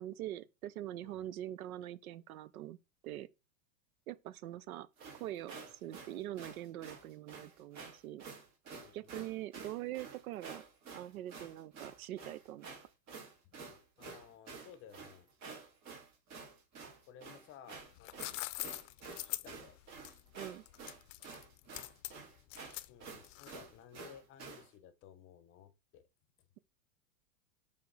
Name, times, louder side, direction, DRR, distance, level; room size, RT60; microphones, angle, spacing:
voice 1, 0.0-2.8 3.0-3.3 4.1-4.9 5.1-8.2 8.9-10.6 10.9-12.7 20.4-20.6, right 13 dB, 85° right, 0.7 m, -43 dB
sound 1, 5.0-24.7, right 4 dB, 40° right, 2.3 m, -50 dB
voice 2, 8.8-9.2 13.4-15.3 17.1-18.3 19.2-19.8 22.9-26.1, left 9 dB, 30° left, 0.8 m, -57 dB
sound 2, 17.8-23.8, left 18 dB, 65° left, 0.6 m, -44 dB
6.7 x 3.5 x 4.0 m
supercardioid pair, 135°, 42 cm